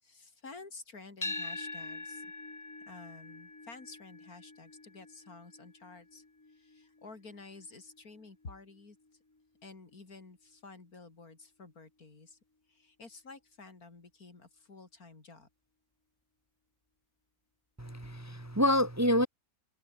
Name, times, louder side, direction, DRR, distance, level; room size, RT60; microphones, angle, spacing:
voice 1, 0.0-2.3 2.9-9.0 9.6-12.4 12.7-15.5, left 3 dB, 85° left, 4.0 m, -51 dB
sound 1, 1.2-9.4, left 2 dB, 15° left, 0.8 m, -45 dB
voice 2, 17.8-19.3, left 1 dB, 10° right, 1.3 m, -27 dB
omnidirectional pair, 1.5 m